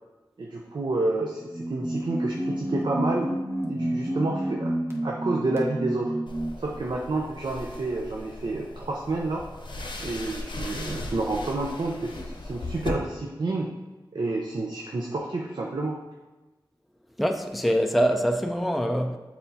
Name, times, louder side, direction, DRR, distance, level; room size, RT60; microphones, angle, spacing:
voice 1, 0.4-3.3 3.7-4.7 5.0-6.2 6.6-9.4 10.0-13.7 14.1-16.0, right 2 dB, 65° right, 0.6 m, -29 dB
sound 1, 1.4-6.7, right 1 dB, 30° right, 0.9 m, -30 dB
sound 2, 6.3-12.9, left 2 dB, 75° left, 0.7 m, -38 dB
voice 2, 17.2-19.2, equal, ahead, 0.4 m, -24 dB
8.0 x 4.3 x 2.7 m
wide cardioid pair, 80°, 8 cm